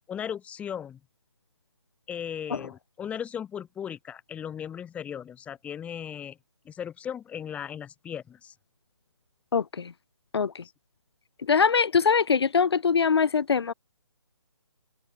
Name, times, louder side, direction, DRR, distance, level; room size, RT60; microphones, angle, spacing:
voice 1, 0.1-1.0 2.1-6.4 6.6-8.5, left 8 dB, 10° left, 2.5 m, -37 dB
voice 2, 9.5-9.9 10.3-10.6 11.5-13.7, left 6 dB, 60° left, 0.7 m, -23 dB
open air
figure-of-eight pair, 150°, 15 cm